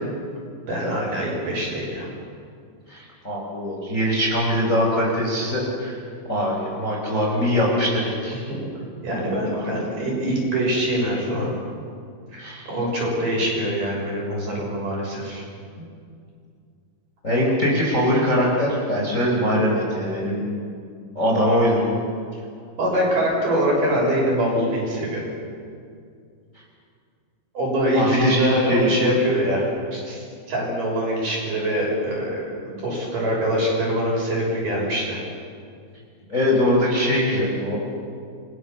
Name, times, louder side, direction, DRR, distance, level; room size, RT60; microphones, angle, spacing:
voice 1, 0.7-2.1 8.3-8.7 9.0-11.5 12.3-15.4 22.8-25.2 27.5-35.2, equal, 45° right, -2 dB, 7.9 m, -24 dB
voice 2, 2.9-6.0 6.3-8.4 9.5-9.6 11.4-11.5 12.4-12.7 17.2-20.4 21.1-21.8 27.9-28.9 36.3-37.8, equal, 15° left, -2 dB, 4.6 m, -22 dB
30.0 x 24.0 x 7.0 m, 2.3 s
omnidirectional pair, 5.5 m